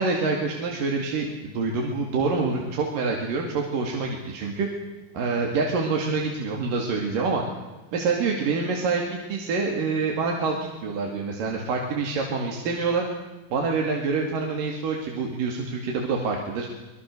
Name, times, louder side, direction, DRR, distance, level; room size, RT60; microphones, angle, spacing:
voice 1, 0.0-4.7 5.1-7.4 7.9-13.1 13.5-16.7, right 4 dB, 80° right, 0 dB, 4.0 m, -26 dB
25.0 x 21.5 x 6.7 m, 1.2 s
omnidirectional pair, 3.9 m